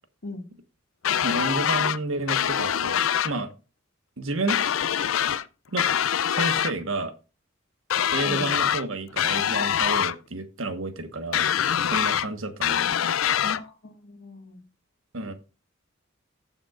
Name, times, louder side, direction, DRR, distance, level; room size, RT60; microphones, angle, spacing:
sound 1, 1.0-2.0 2.3-3.3 4.5-5.4 5.8-6.7 7.9-8.8 9.2-10.1 11.3-12.3 12.6-13.6, left 9 dB, 80° left, 0.5 m, -24 dB
voice 1, 1.2-3.0 3.2-3.5 4.2-4.6 5.7-5.9 6.3-7.1 8.1-11.5 11.8-13.0 15.1-15.3, right 2 dB, 85° right, 8 dB, 1.4 m, -30 dB
voice 2, 13.4-14.6, left 2 dB, 65° left, 4 dB, 1.9 m, -39 dB
15.0 x 7.2 x 2.5 m, 0.31 s
head